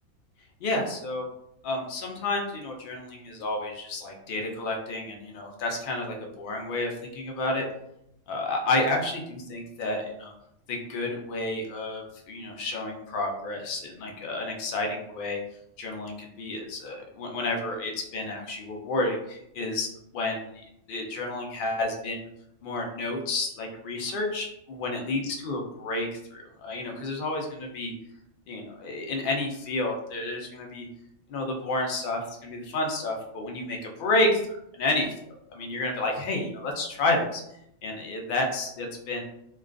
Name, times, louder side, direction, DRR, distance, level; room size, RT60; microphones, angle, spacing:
voice 1, 0.6-1.2 1.6-7.6 8.3-10.3 10.7-15.4 15.8-19.9 20.1-20.4 20.9-22.3 22.6-27.9 28.5-30.9 31.3-34.4 34.7-35.1 35.5-37.4 37.8-39.2, left 2 dB, 70° left, 1 dB, 0.5 m, -30 dB
2.3 x 2.2 x 2.4 m, 0.79 s
omnidirectional pair, 1.4 m